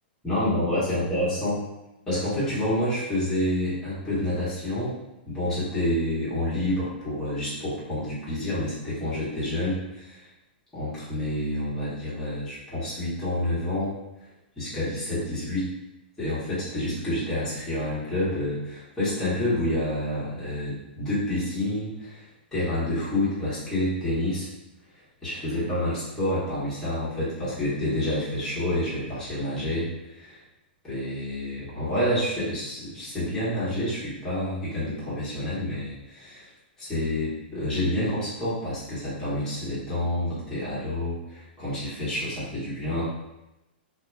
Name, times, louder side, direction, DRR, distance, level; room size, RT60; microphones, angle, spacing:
voice 1, 0.2-1.7 2.1-10.3 10.7-14.0 14.6-15.7 16.2-22.3 22.5-24.5 24.9-30.4 30.8-36.5 36.8-43.0, left 1 dB, 5° left, -12 dB, 1.1 m, -28 dB
2.8 x 2.0 x 2.2 m, 0.95 s
hypercardioid pair, 130°, 6 cm